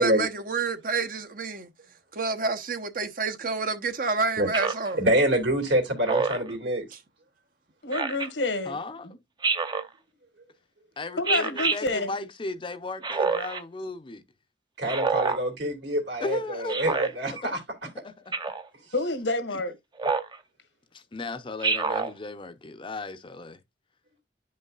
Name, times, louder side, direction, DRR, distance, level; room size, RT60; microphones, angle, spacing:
voice 1, 0.0-1.7 2.1-5.0, right 4 dB, 50° right, 0.9 m, -29 dB
Speech synthesizer, 4.5-4.9 6.1-6.5 7.9-8.3 9.4-9.9 11.3-11.8 13.0-13.6 14.9-15.4 16.7-17.1 18.3-18.7 20.0-20.4 21.6-22.1, right 4 dB, 25° right, 0.6 m, -26 dB
voice 2, 5.0-6.8 14.8-17.6, right 1 dB, 70° right, 2.7 m, -25 dB
voice 3, 7.8-8.8 11.2-12.2 18.9-19.8, left 2 dB, 85° left, 1.6 m, -28 dB
voice 4, 8.7-9.1 11.0-14.2 16.2-17.0 17.3-17.5 17.8-18.3 20.9-23.6, left 2 dB, 30° left, 0.6 m, -36 dB
10.5 x 5.4 x 2.4 m
head